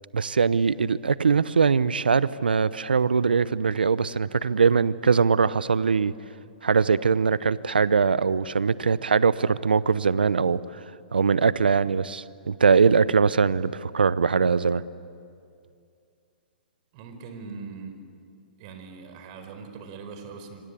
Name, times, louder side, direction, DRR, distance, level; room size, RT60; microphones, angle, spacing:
voice 1, 0.1-6.1 6.6-10.6 11.1-14.8, right 5 dB, 80° right, 18 dB, 0.8 m, -22 dB
voice 2, 16.9-18.0 18.6-20.7, right 5 dB, 45° right, 7 dB, 4.6 m, -41 dB
26.0 x 25.5 x 8.5 m, 2.4 s
hypercardioid pair, 120°, 5 cm